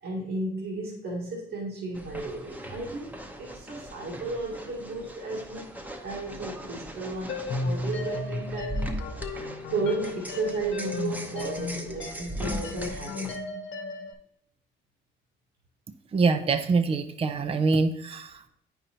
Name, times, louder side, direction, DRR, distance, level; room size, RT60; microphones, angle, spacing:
voice 1, 0.0-5.7 6.0-8.9 9.7-13.3, right 3 dB, 80° right, -5 dB, 1.7 m, -34 dB
sound 1, 1.9-13.4, equal, 10° right, 0.8 m, -39 dB
sound 2, 7.3-14.1, left 3 dB, 75° left, 1.0 m, -34 dB
voice 2, 16.1-18.5, right 4 dB, 30° right, 9 dB, 0.5 m, -25 dB
8.7 x 5.3 x 2.9 m, 0.75 s
cardioid pair, 90°, 20 cm